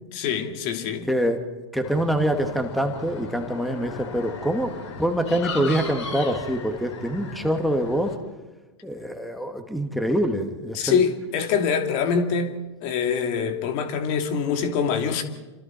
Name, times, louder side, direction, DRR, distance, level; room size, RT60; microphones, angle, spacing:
voice 1, 0.1-1.1 10.8-12.5 12.8-15.2, left 6 dB, 50° left, 2.7 m, -24 dB
voice 2, 1.1-1.4 1.7-4.7 5.0-8.1 8.8-11.0, right 1 dB, ahead, 2.2 m, -25 dB
sound 1, 1.8-8.2, left 4 dB, 75° left, 4.6 m, -36 dB
29.0 x 26.0 x 4.5 m
hypercardioid pair, 100°, 15 cm